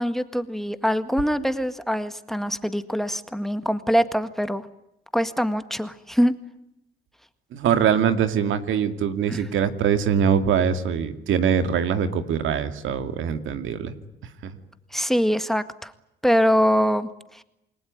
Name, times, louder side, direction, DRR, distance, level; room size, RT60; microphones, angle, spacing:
voice 1, 0.0-4.7 5.1-6.3 9.3-9.4 14.9-15.9 16.2-17.4, equal, ahead, 11 dB, 1.8 m, -23 dB
voice 2, 7.5-13.9 14.4-14.5, right 7 dB, 80° right, 9 dB, 2.4 m, -23 dB
28.5 x 20.5 x 9.5 m, 0.87 s
cardioid pair, 90°, 20 cm